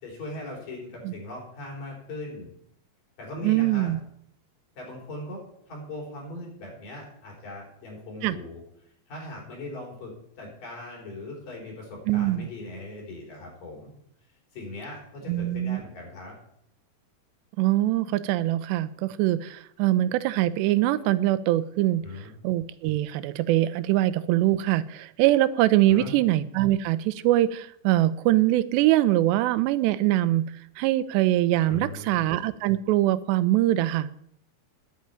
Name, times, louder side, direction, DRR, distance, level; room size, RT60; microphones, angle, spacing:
voice 1, 0.0-2.5 3.2-3.9 4.8-5.4 5.7-8.6 9.1-13.9 14.5-16.4 22.0-22.3 25.9-26.2 31.7-32.2, left 2 dB, 50° left, -2 dB, 5.8 m, -39 dB
voice 2, 3.4-4.0 8.2-8.4 12.1-12.5 15.3-15.8 17.6-22.1 22.4-30.5 30.8-34.1, right 15 dB, 85° right, 14 dB, 2.8 m, -23 dB
10.5 x 8.3 x 9.0 m, 0.72 s
omnidirectional pair, 4.9 m